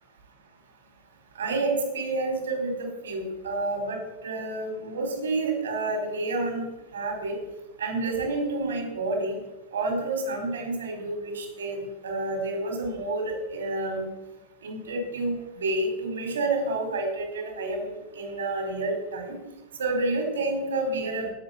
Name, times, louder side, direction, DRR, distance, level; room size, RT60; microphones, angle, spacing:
voice 1, 1.3-4.0 4.2-6.6 6.9-7.3 7.8-9.4 9.7-14.0 14.6-19.3 19.8-21.3, right 2 dB, 65° right, 3 dB, 5.0 m, -29 dB
19.0 x 8.4 x 6.0 m, 1.0 s
figure-of-eight pair, 90°, 0 cm